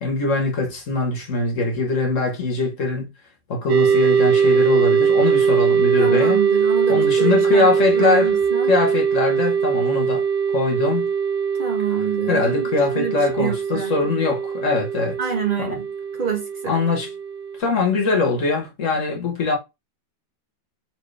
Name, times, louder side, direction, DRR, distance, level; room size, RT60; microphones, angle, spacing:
voice 1, 0.0-3.1 3.5-6.4 6.9-8.4 8.7-10.2 10.5-11.1 12.3-15.2 15.6-15.8 16.7-17.1 17.6-19.6, left 3 dB, 50° left, 1.2 m, -22 dB
sound 1, 3.7-17.6, right 6 dB, 80° right, 1.3 m, -21 dB
voice 2, 6.0-8.7 11.6-14.2 15.2-15.9 16.2-16.8, right 6 dB, 45° right, 0.7 m, -27 dB
4.4 x 2.9 x 3.2 m
omnidirectional pair, 2.0 m